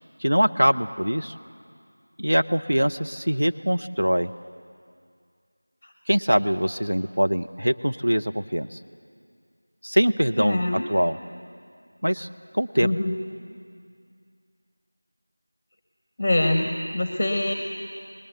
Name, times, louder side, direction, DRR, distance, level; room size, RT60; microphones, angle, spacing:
voice 1, 0.2-1.3 2.2-4.3 6.1-8.8 9.8-10.6 10.9-11.2 12.0-12.3 12.5-12.9, equal, 80° right, 8 dB, 0.8 m, -23 dB
voice 2, 10.4-10.9 12.8-13.2 16.2-17.5, left 1 dB, 20° left, 4 dB, 0.9 m, -24 dB
22.5 x 20.0 x 6.8 m, 2.2 s
figure-of-eight pair, 175°, 0 cm